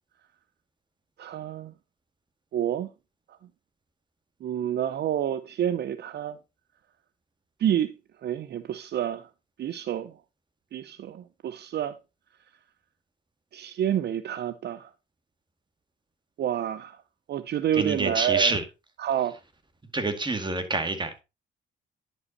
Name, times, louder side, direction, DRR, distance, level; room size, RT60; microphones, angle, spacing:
voice 1, 1.2-1.7 2.5-2.9 4.4-6.4 7.6-7.9 8.2-9.3 9.6-10.1 10.7-12.0 13.5-14.9 16.4-17.0 17.3-18.6 19.0-19.4, right 10 dB, 60° right, 0.6 m, -28 dB
voice 2, 17.8-18.6 19.9-21.2, right 3 dB, 25° right, 2.0 m, -27 dB
10.5 x 5.5 x 4.1 m
cardioid pair, 90°, 20 cm